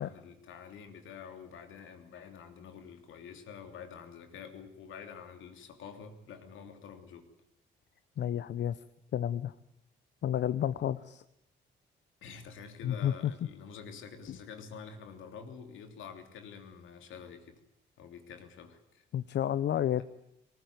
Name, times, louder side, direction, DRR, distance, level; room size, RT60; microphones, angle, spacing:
voice 1, 0.0-7.3 12.2-17.6 18.0-19.0, left 6 dB, 80° left, 6 dB, 3.2 m, -48 dB
voice 2, 8.2-8.8 9.1-9.5 10.2-11.2 12.8-13.1 14.3-14.4 19.1-20.0, left 10 dB, 60° left, 14 dB, 0.8 m, -30 dB
19.5 x 19.0 x 9.4 m, 0.81 s
cardioid pair, 90°, 20 cm